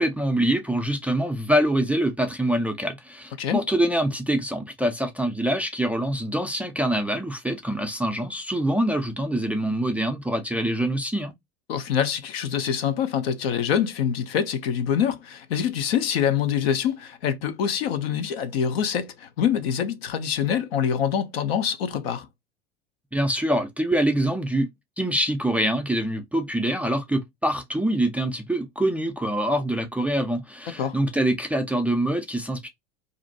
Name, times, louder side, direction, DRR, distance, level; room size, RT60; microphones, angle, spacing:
voice 1, 0.0-11.3 23.1-24.7 25.0-32.7, right 1 dB, 5° right, 0.3 m, -25 dB
voice 2, 11.7-22.3 30.8-31.0, left 8 dB, 70° left, 0.6 m, -25 dB
2.5 x 2.1 x 2.6 m
hypercardioid pair, 80°, 31 cm